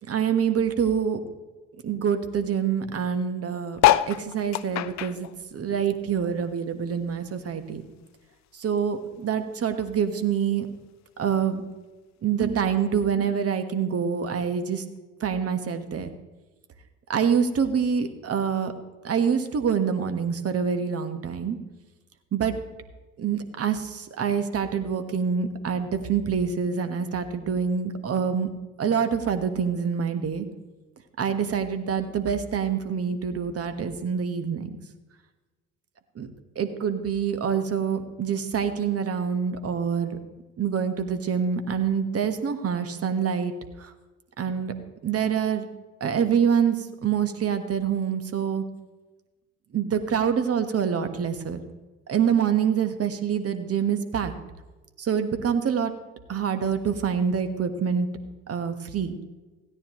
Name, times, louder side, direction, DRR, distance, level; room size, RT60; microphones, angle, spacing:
voice 1, 0.1-1.2 1.8-7.8 8.5-10.7 11.2-11.6 12.2-14.8 15.2-16.1 17.1-18.7 19.0-21.6 22.3-22.6 23.2-28.5 28.8-30.5 31.2-34.8 36.1-36.3 36.5-40.2 40.6-43.5 43.8-43.9 44.4-44.7 45.0-45.7 46.0-48.6 49.7-51.6 52.1-54.3 55.0-55.9 56.3-58.1 58.5-59.2, right 7 dB, 40° right, 9 dB, 1.4 m, -26 dB
sound 1, 3.8-6.5 6.9-8.4 8.9-9.0 9.1-9.2 9.4-9.8 10.6-10.7, left 13 dB, 50° left, 0.6 m, -25 dB
16.0 x 9.7 x 3.1 m, 1.2 s
hypercardioid pair, 60°, 35 cm